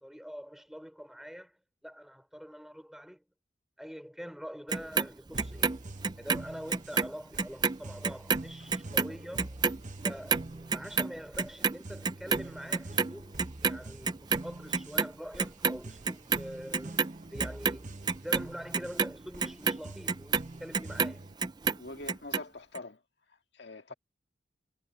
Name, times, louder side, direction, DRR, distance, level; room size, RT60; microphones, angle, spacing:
voice 1, 0.0-1.5 1.8-3.2 3.8-5.9 6.2-9.6 10.0-17.0 17.3-17.9 18.2-21.2 23.9-24.0, equal, ahead, 3.8 m, -44 dB
Clock, 4.7-7.1 7.4-13.8 14.0-15.1 15.4-16.4 16.7-21.1 21.4-22.4 22.7-22.8, right 5 dB, 20° right, 0.5 m, -29 dB
sound 1, 5.3-21.4, right 2 dB, 40° right, 1.0 m, -46 dB
voice 2, 21.7-23.0 23.6-23.9, left 2 dB, 60° left, 2.0 m, -43 dB
head